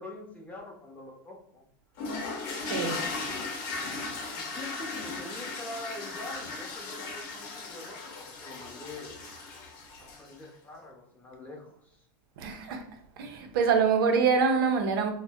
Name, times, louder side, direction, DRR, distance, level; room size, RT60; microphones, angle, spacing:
voice 1, 0.0-1.6 2.9-3.3 4.3-9.2 10.0-12.1, left 2 dB, 15° left, 0.7 m, -44 dB
sound 1, 2.0-10.4, left 3 dB, 65° left, 0.7 m, -37 dB
voice 2, 2.6-3.1 12.4-12.9 13.2-15.1, right 5 dB, 85° right, 0.5 m, -25 dB
2.5 x 2.0 x 3.4 m
supercardioid pair, 135°, 12 cm